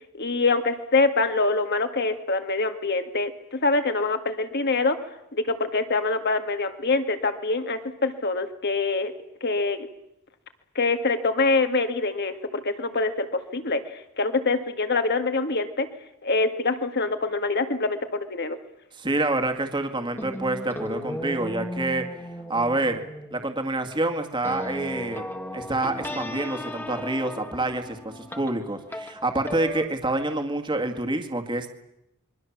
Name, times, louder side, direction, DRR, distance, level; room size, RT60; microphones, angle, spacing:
voice 1, 0.1-5.0 5.3-9.1 9.4-9.9 10.8-15.9 16.2-18.6, left 3 dB, 50° left, 8 dB, 2.1 m, -25 dB
voice 2, 18.9-22.1 22.5-23.0 23.3-25.2 25.5-31.7, right 2 dB, 20° right, 5 dB, 2.1 m, -27 dB
sound 1, 20.1-29.9, left 1 dB, 10° left, 1.6 m, -36 dB
27.0 x 23.0 x 7.4 m, 0.84 s
head